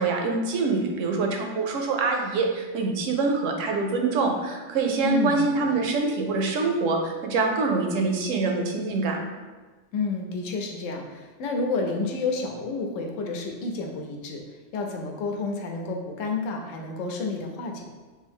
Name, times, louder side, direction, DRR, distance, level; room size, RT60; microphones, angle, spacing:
voice 1, 0.0-9.2, right 3 dB, 75° right, 2 dB, 0.9 m, -25 dB
voice 2, 5.0-5.4 9.9-14.4 14.7-17.8, left 3 dB, 75° left, 2 dB, 0.9 m, -30 dB
3.3 x 2.7 x 3.4 m, 1.3 s
omnidirectional pair, 1.3 m